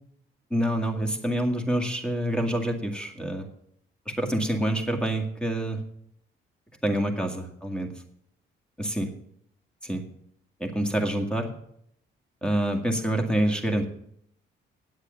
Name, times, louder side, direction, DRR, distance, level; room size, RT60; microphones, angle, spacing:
voice 1, 0.5-3.5 4.1-5.8 6.8-7.9 8.8-9.1 9.8-10.0 10.6-11.5 12.4-13.9, right 1 dB, 5° left, 3 dB, 2.0 m, -27 dB
9.4 x 8.1 x 6.9 m, 0.70 s
cardioid pair, 90°, 20 cm